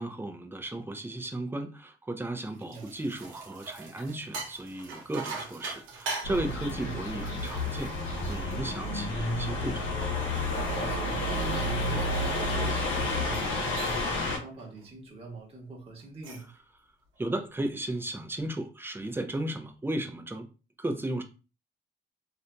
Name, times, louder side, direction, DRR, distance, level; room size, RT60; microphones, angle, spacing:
voice 1, 0.0-9.9 16.4-16.5 17.2-20.5 20.8-21.2, right 1 dB, 10° right, 0.5 m, -35 dB
sound 1, 2.4-9.2 9.7-12.7 13.2-13.5 13.8-14.2 14.6-14.9 16.0-16.6, right 3 dB, 85° right, 0.7 m, -42 dB
sound 2, 6.2-14.4, left 1 dB, 75° left, 1.0 m, -30 dB
voice 2, 10.7-16.5, right 2 dB, 30° right, 1.0 m, -43 dB
2.7 x 2.6 x 2.2 m
cardioid pair, 90°, 20 cm